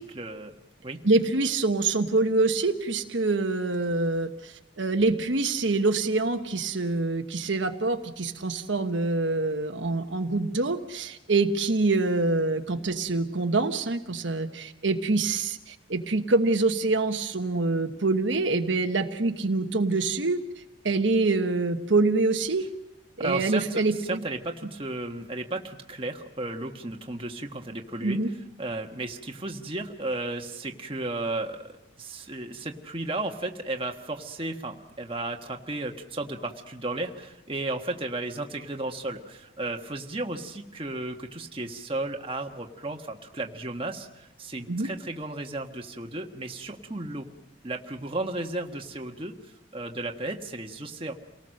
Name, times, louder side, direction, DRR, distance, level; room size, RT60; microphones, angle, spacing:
voice 1, 0.1-0.6 0.8-1.0 23.2-28.2 28.6-31.7 32.0-47.3 47.6-51.1, right 2 dB, 25° right, 3 dB, 1.5 m, -34 dB
voice 2, 1.0-20.4 20.8-22.6 23.2-24.2 28.0-28.3 44.7-44.9, right 3 dB, 70° right, 6 dB, 1.2 m, -25 dB
28.5 x 19.0 x 6.5 m, 0.98 s
head